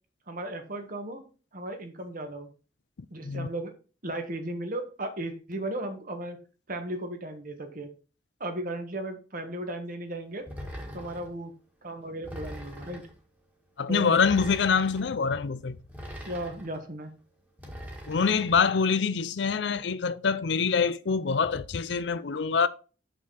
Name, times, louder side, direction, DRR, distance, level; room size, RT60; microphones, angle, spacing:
voice 1, 0.3-1.2 1.5-2.5 3.1-3.7 4.0-6.4 6.7-7.9 8.4-10.4 10.9-11.5 11.8-13.1 13.9-14.2 16.3-17.1, right 1 dB, 50° right, 1.6 m, -35 dB
sound 1, 10.5-11.3 12.2-13.2 14.2-15.0 15.9-16.8 17.6-18.6, equal, 10° right, 1.8 m, -41 dB
voice 2, 13.8-15.8 18.1-22.7, left 5 dB, 70° left, 0.5 m, -25 dB
6.5 x 6.0 x 4.2 m
head